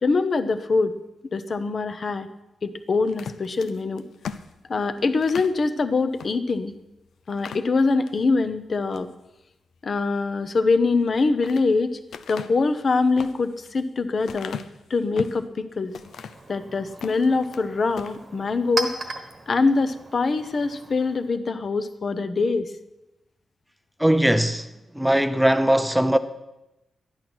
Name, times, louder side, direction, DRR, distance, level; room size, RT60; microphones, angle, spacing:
voice 1, 0.0-1.0 1.3-2.3 2.6-4.0 4.7-6.7 7.3-9.1 9.8-12.0 12.3-14.6 14.9-15.9 16.5-19.0 19.5-22.7, left 3 dB, 35° left, 0.8 m, -23 dB
sound 1, 3.1-5.6 6.1-6.3 6.7-6.8 7.3-8.2 8.7-9.1 10.9-11.7 12.1-15.5 15.9-16.5 16.9-17.6 17.9-18.2, left 7 dB, 85° left, 0.6 m, -38 dB
Chink clink, 15.8-21.3, right 2 dB, 30° right, 1.3 m, -37 dB
voice 2, 24.0-24.7 24.9-26.2, right 1 dB, ahead, 0.6 m, -19 dB
13.0 x 10.5 x 6.1 m
wide cardioid pair, 170°, 0 cm